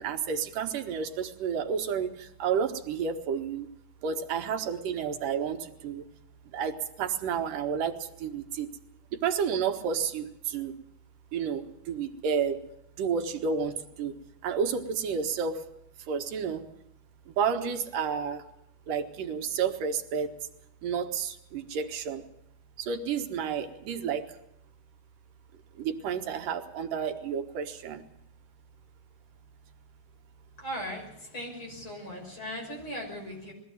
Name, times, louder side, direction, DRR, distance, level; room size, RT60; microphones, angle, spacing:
voice 1, 0.0-3.7 4.0-6.0 6.5-8.7 9.2-10.7 11.3-12.6 13.0-14.1 14.4-15.6 16.1-16.6 17.3-18.4 18.9-20.3 20.8-22.2 22.8-24.3 25.8-28.0, right 6 dB, 90° right, 4 dB, 3.0 m, -31 dB
voice 2, 30.6-33.5, equal, 35° left, 1 dB, 6.8 m, -38 dB
21.5 x 15.5 x 7.9 m, 0.81 s
omnidirectional pair, 3.8 m